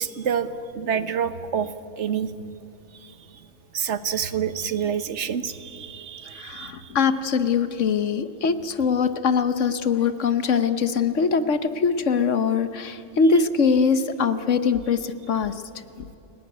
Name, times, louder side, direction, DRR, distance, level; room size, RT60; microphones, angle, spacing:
voice 1, 0.0-2.6 3.0-3.1 3.7-6.9, right 7 dB, 65° right, 13 dB, 1.3 m, -28 dB
voice 2, 6.3-15.6 16.0-16.1, left 5 dB, 75° left, 11 dB, 1.3 m, -22 dB
30.0 x 17.5 x 9.5 m, 2.9 s
omnidirectional pair, 1.3 m